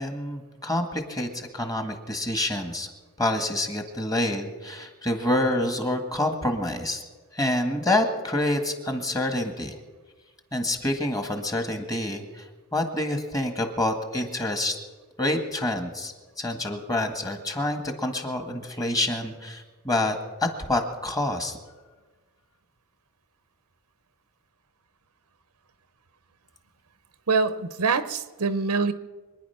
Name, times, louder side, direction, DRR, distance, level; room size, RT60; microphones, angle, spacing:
voice 1, 0.0-2.9 3.2-7.0 7.3-9.8 10.5-12.5 12.7-14.8 15.2-21.6, left 1 dB, 15° left, 5 dB, 1.7 m, -27 dB
voice 2, 27.3-28.9, right 4 dB, 85° right, 12 dB, 0.9 m, -24 dB
25.0 x 10.0 x 5.8 m, 1.3 s
head